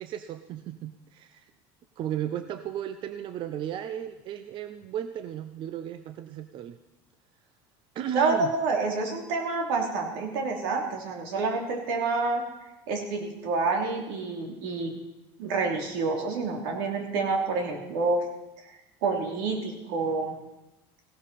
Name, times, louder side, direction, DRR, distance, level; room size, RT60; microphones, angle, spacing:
voice 1, 0.0-1.5 2.0-6.8 7.9-8.5, right 10 dB, 45° right, 10 dB, 0.7 m, -35 dB
voice 2, 8.1-12.4 12.9-14.9 15.4-18.2 19.0-20.4, right 3 dB, 80° right, 2 dB, 3.0 m, -28 dB
16.0 x 12.5 x 4.2 m, 0.96 s
supercardioid pair, 125°, 12 cm